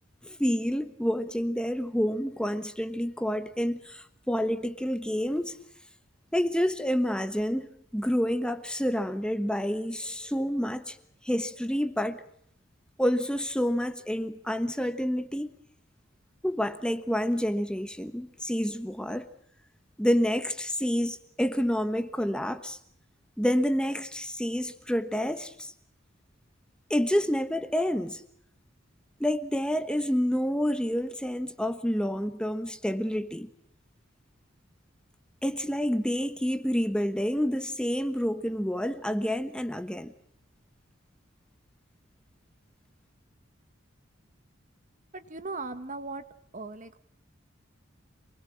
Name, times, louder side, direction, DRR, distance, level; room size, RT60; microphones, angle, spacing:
voice 1, 0.2-5.6 6.3-7.7 7.9-11.0 11.2-12.2 13.0-15.5 16.4-19.3 20.0-22.8 23.4-25.7 26.9-28.2 29.2-33.5 35.4-40.1, equal, 5° left, 1.3 m, -28 dB
voice 2, 45.1-46.2 46.5-47.0, right 3 dB, 40° right, 1.6 m, -38 dB
27.5 x 21.5 x 7.4 m
head